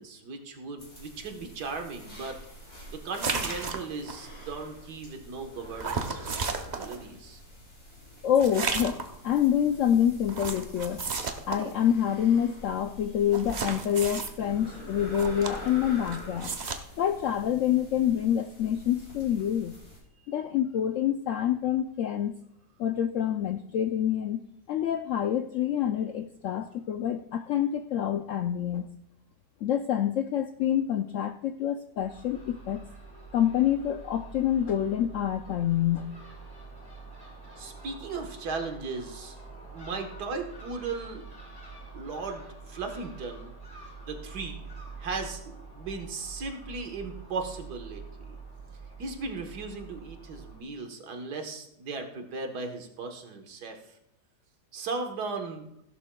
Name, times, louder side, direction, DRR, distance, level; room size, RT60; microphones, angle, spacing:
voice 1, 0.0-2.4 2.9-7.4 37.6-39.4 39.7-41.3 41.9-43.5 44.1-44.6 45.0-48.4 49.0-53.8 54.7-55.7, right 4 dB, 70° right, 4 dB, 1.8 m, -37 dB
sound 1, 0.8-20.0, equal, 55° left, 5.9 m, -46 dB
sound 2, 3.1-4.2 5.8-7.0 8.4-9.1 10.3-11.7 13.3-14.3 15.1-15.8 16.1-16.8, right 4 dB, 55° right, 0.4 m, -33 dB
voice 2, 8.2-11.0 11.5-16.5 17.0-19.7 20.3-22.3 22.8-24.4 24.7-28.9 29.6-32.8 33.3-36.1, left 10 dB, 75° left, 7 dB, 0.7 m, -27 dB
Crow / Gull seagull, 32.0-50.6, right 4 dB, 15° left, 3.6 m, -46 dB
16.0 x 11.5 x 2.2 m, 0.78 s
omnidirectional pair, 1.8 m